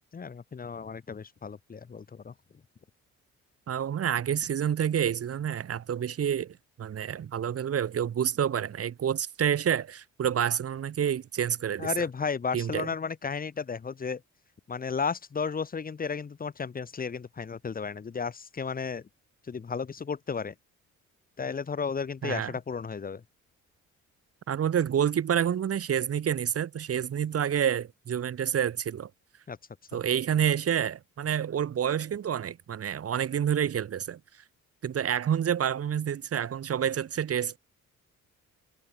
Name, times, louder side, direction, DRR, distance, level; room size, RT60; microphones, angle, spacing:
voice 1, 0.1-2.3 11.8-14.2 14.7-19.1 19.5-20.5 21.4-23.2 29.5-29.6, left 5 dB, 30° left, 1.1 m, -33 dB
voice 2, 3.7-11.9 12.5-12.9 22.2-22.5 24.5-29.1 29.9-34.2 34.8-37.6, right 9 dB, 50° right, 1.7 m, -28 dB
cardioid pair, 90°, 30 cm